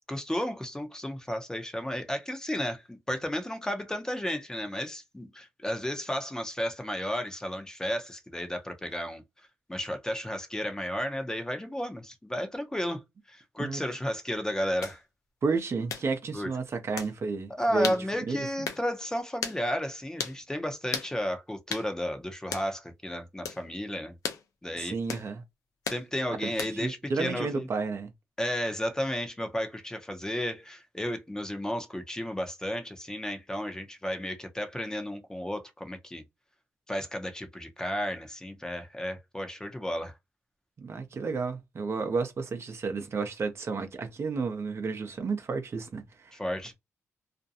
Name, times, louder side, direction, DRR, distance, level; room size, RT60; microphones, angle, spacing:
voice 1, 0.1-9.2 9.7-13.0 13.3-15.0 16.3-16.5 17.6-24.1 24.6-24.9 25.9-27.7 28.4-36.2 36.9-40.1 46.3-46.7, equal, 10° left, 0.6 m, -33 dB
sound 1, 14.8-15.0 15.9-16.1 17.0-17.1 17.8-18.0 18.7-18.8 19.4-19.6 20.2-20.4 20.9-21.1 21.7-21.9 22.5-22.7 23.5-23.6 24.2-24.4 25.1-25.3 25.9-26.0 26.6-26.9, left 6 dB, 80° left, 0.6 m, -34 dB
voice 2, 15.4-17.9 18.3-18.5 24.7-25.4 26.4-28.1 40.8-46.4, right 4 dB, 50° right, 0.6 m, -32 dB
2.5 x 2.2 x 2.6 m
cardioid pair, 80°, 6 cm